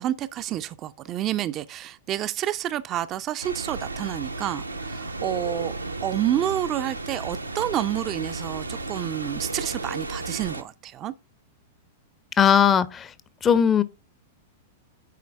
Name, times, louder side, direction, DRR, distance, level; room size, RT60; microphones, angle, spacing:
voice 1, 0.0-11.1, right 12 dB, 30° right, 0.4 m, -29 dB
sound 1, 3.4-10.6, right 2 dB, 80° right, 0.6 m, -34 dB
voice 2, 12.4-13.1 13.4-13.8, left 8 dB, 20° left, 0.5 m, -18 dB
9.3 x 4.4 x 3.5 m
figure-of-eight pair, 95°, 0 cm